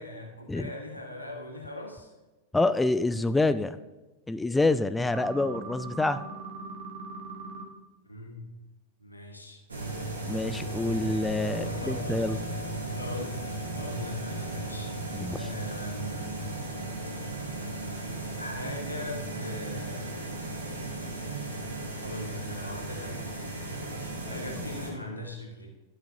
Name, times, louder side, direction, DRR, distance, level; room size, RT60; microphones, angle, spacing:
voice 1, 0.0-2.1 8.0-8.5 9.0-9.6 11.6-12.2 12.9-13.4 13.7-15.0 15.3-16.5 18.4-20.1 22.0-23.3 24.3-25.7, left 1 dB, 85° left, 1 dB, 1.4 m, -40 dB
voice 2, 2.5-3.8 4.3-6.2 10.3-12.4 15.1-15.5, left 2 dB, 10° left, 13 dB, 0.3 m, -27 dB
sound 1, 5.1-7.6, right 3 dB, 55° right, 1.4 m, -40 dB
sound 2, 9.7-24.9, right 2 dB, 75° right, 1.7 m, -35 dB
12.5 x 6.5 x 2.7 m, 1.1 s
figure-of-eight pair, 90°, 0 cm